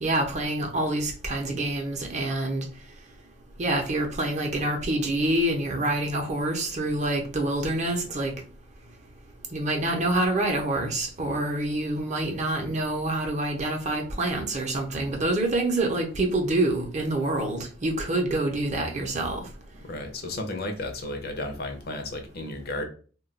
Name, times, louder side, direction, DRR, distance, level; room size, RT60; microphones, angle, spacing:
voice 1, 0.0-2.6 3.6-8.3 9.5-19.4, right 1 dB, 35° right, 3 dB, 0.6 m, -26 dB
voice 2, 19.8-22.8, left 2 dB, 50° left, 4 dB, 0.6 m, -33 dB
2.3 x 2.2 x 3.9 m, 0.39 s
head